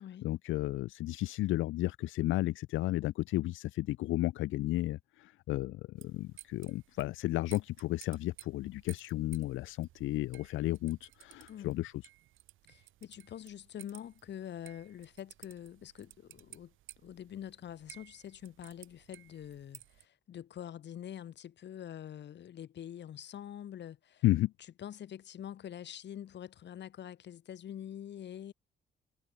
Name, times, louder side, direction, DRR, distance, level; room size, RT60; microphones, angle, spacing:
voice 1, 0.0-11.9 24.2-24.5, left 16 dB, 80° left, 0.5 m, -33 dB
sound 1, 6.0-20.0, right 14 dB, 85° right, 7.3 m, -57 dB
voice 2, 11.5-11.8 12.7-16.7 17.0-24.2 24.8-28.5, left 10 dB, 65° left, 2.2 m, -45 dB
cardioid pair, 90°, 20 cm